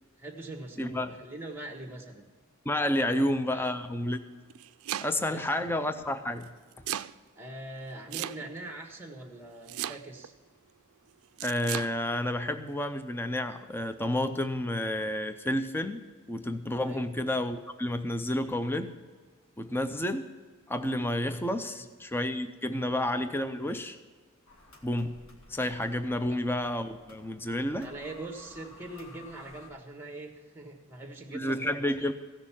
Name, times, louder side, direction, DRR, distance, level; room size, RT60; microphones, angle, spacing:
voice 1, 0.2-2.2 3.1-3.7 5.3-5.7 7.4-10.3 16.8-17.1 21.6-21.9 22.6-22.9 26.1-26.4 27.8-32.1, right 2 dB, 10° right, 3 dB, 1.5 m, -43 dB
voice 2, 0.8-1.2 2.7-4.4 5.0-6.5 11.4-16.0 16.3-18.9 19.6-20.3 20.7-24.0 24.8-25.2 25.5-27.9 31.3-32.1, left 1 dB, 10° left, 9 dB, 0.5 m, -30 dB
Domestic sounds home sounds, 4.3-5.4 6.4-7.1 8.1-8.7 9.7-10.3 11.4-11.9, right 12 dB, 70° right, 0.4 m, -35 dB
sound 1, 24.5-29.7, left 2 dB, 65° left, 1.9 m, -54 dB
16.0 x 6.6 x 7.2 m, 1.5 s
head